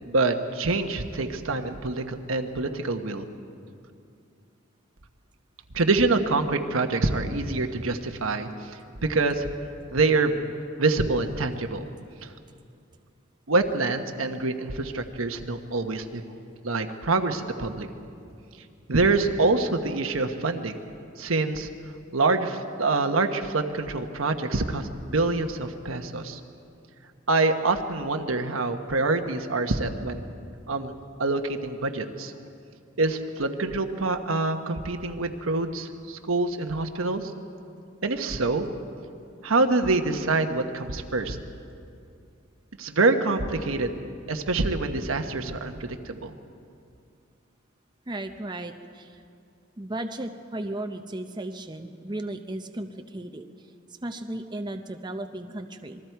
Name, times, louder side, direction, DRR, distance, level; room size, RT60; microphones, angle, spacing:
voice 1, 0.1-3.2 5.7-8.5 9.0-9.5 9.9-10.5 10.8-11.8 12.2-12.3 13.5-16.2 16.6-17.9 18.9-20.8 21.2-21.7 22.1-26.4 27.3-30.3 30.7-30.9 31.2-32.3 33.0-37.3 38.0-38.7 39.4-41.4 42.8-43.9 44.3-46.3, right 3 dB, 85° right, 6 dB, 1.2 m, -25 dB
voice 2, 48.1-49.2 49.8-53.5 54.0-56.0, right 1 dB, 20° right, 6 dB, 0.7 m, -35 dB
27.0 x 21.0 x 4.7 m, 2.5 s
head